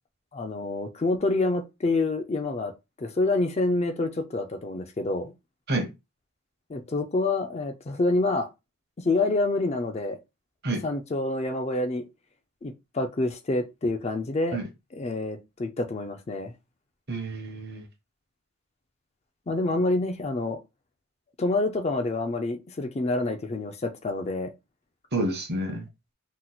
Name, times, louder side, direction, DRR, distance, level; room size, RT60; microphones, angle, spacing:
voice 1, 0.3-2.7 3.0-5.3 6.7-8.5 9.0-10.2 10.8-12.1 12.6-14.6 14.9-16.5 19.5-20.6 21.4-24.5, left 2 dB, 30° left, 0.4 m, -27 dB
voice 2, 17.1-17.8 25.1-25.9, right 1 dB, 45° right, 0.8 m, -29 dB
2.9 x 2.0 x 3.9 m
head